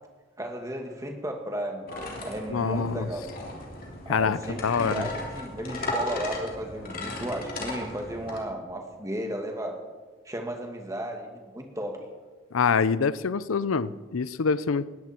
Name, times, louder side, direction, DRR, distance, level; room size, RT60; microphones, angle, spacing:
voice 1, 0.4-1.9 2.2-3.3 4.1-9.8 10.3-12.1, right 1 dB, 15° right, 3 dB, 2.1 m, -34 dB
sound 1, 1.9-8.4, left 1 dB, 45° left, 3.3 m, -36 dB
voice 2, 2.5-3.1 4.1-4.4 4.6-5.0 12.5-14.9, left 5 dB, 90° left, 17 dB, 0.5 m, -25 dB
20.0 x 16.0 x 4.4 m, 1.4 s
head